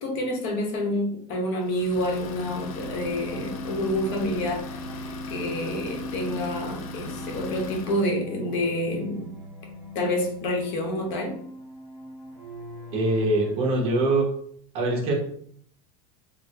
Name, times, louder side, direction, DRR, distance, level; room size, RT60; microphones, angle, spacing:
voice 1, 0.0-9.3 9.9-11.4, left 1 dB, 50° left, 1 dB, 0.9 m, -28 dB
Idling, 1.6-8.1, left 5 dB, 80° left, 0.5 m, -41 dB
sound 1, 1.9-13.6, equal, 5° right, 0.7 m, -39 dB
voice 2, 12.9-14.2 14.7-15.1, right 2 dB, 35° right, -2 dB, 1.0 m, -23 dB
3.8 x 2.1 x 2.7 m, 0.63 s
supercardioid pair, 165°, 17 cm